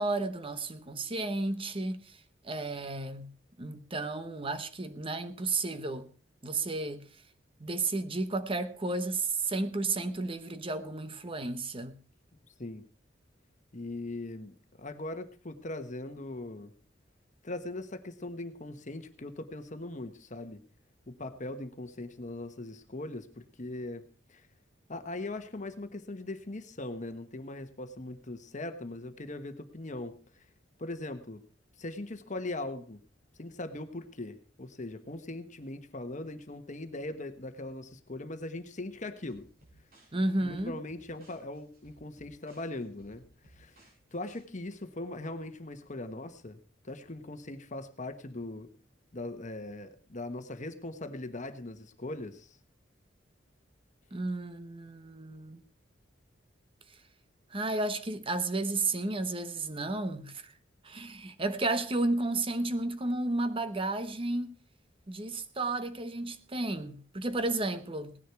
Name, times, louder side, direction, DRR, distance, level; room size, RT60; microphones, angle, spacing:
voice 1, 0.0-3.3 3.6-6.1 6.4-7.1 7.6-12.0 40.1-40.8 54.1-55.6 57.5-60.5 60.8-64.5 65.1-68.2, right 2 dB, 30° right, 1.1 m, -32 dB
voice 2, 13.7-14.5 14.8-16.7 17.4-20.6 21.1-24.4 24.9-30.2 30.8-31.4 31.8-33.0 33.4-39.5 40.4-43.2 43.5-43.8 44.1-46.6 46.8-48.7 49.1-52.6, left 2 dB, 40° left, 1.2 m, -40 dB
sound 1, 39.3-44.4, right 1 dB, 50° right, 7.2 m, -61 dB
17.5 x 10.0 x 4.6 m
head